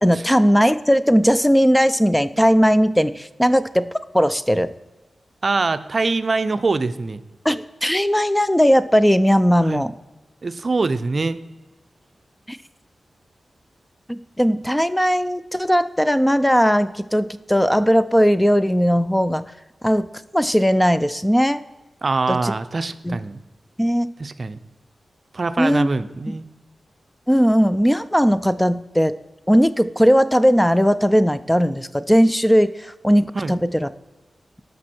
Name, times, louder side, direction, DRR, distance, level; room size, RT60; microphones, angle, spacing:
voice 1, 0.0-4.7 7.5-9.9 12.5-12.6 14.1-19.4 19.8-20.1 20.3-21.6 22.3-22.5 23.0-23.2 23.8-24.1 25.6-25.9 27.3-29.1 29.5-33.9, equal, 5° left, 13 dB, 0.3 m, -18 dB
voice 2, 5.4-7.2 9.6-9.8 10.4-11.4 22.0-23.4 24.2-24.6 25.3-26.4 33.3-33.6, right 3 dB, 45° right, 12 dB, 0.5 m, -23 dB
14.0 x 5.4 x 4.3 m, 1.1 s
wide cardioid pair, 80°, 0 cm